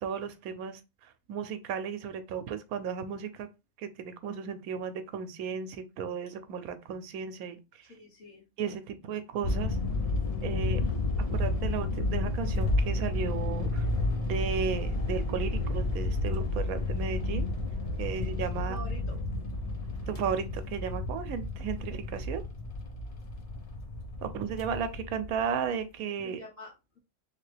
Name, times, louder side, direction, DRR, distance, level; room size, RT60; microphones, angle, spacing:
voice 1, 0.0-3.5 3.8-7.9 8.6-9.8 10.4-10.8 11.2-13.9 14.2-17.5 18.0-18.8 20.1-22.4 24.2-26.4, right 7 dB, 90° right, 1.1 m, -35 dB
voice 2, 7.9-8.5 10.6-11.0 18.6-19.2 26.2-27.0, left 1 dB, 70° left, 1.4 m, -47 dB
sound 1, 9.4-25.6, left 2 dB, 45° left, 0.5 m, -31 dB
3.4 x 2.9 x 3.2 m
omnidirectional pair, 1.5 m